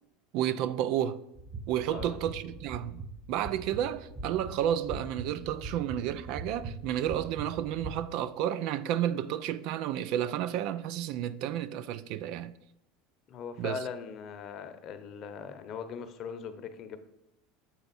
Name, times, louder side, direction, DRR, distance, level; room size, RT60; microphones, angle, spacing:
voice 1, 0.3-1.2 1.7-3.0 3.3-12.5 13.6-13.8, right 11 dB, 60° right, 0.3 m, -31 dB
sound 1, 1.4-7.9, right 2 dB, 10° right, 1.1 m, -42 dB
voice 2, 1.9-2.2 13.3-17.0, left 6 dB, 45° left, 0.8 m, -40 dB
7.0 x 4.4 x 4.1 m
supercardioid pair, 110°, 0 cm